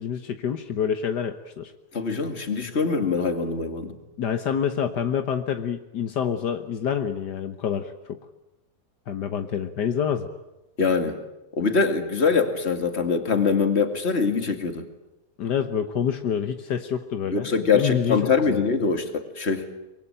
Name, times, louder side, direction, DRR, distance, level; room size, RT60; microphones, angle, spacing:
voice 1, 0.0-1.7 4.2-8.2 9.1-10.3 15.4-17.5 17.7-18.7, left 8 dB, 75° left, 8 dB, 1.8 m, -27 dB
voice 2, 1.9-4.0 10.8-11.2 11.5-14.8 17.3-19.7, left 5 dB, 40° left, 7 dB, 2.5 m, -23 dB
24.5 x 23.0 x 9.0 m, 0.93 s
omnidirectional pair, 1.8 m